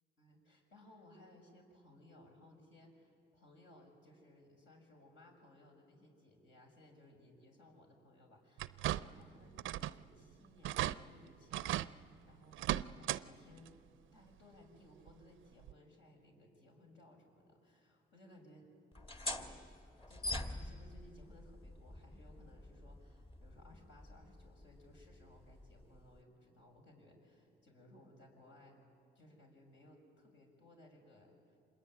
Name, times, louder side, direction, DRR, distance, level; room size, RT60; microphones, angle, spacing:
voice 1, 0.2-18.7 19.2-19.6 20.1-28.9 29.1-31.6, left 1 dB, 70° left, 1 dB, 6.4 m, -61 dB
sound 1, 8.6-9.3 9.6-10.0 10.3-10.4 10.6-11.0 11.5-11.9 12.5-13.2 13.6-13.7 15.1-15.2 15.7-15.8, right 13 dB, 80° right, 0.5 m, -36 dB
sound 2, 18.9-26.2, left 1 dB, 25° left, 1.9 m, -46 dB
26.0 x 21.5 x 9.8 m, 2.6 s
cardioid pair, 90°, 20 cm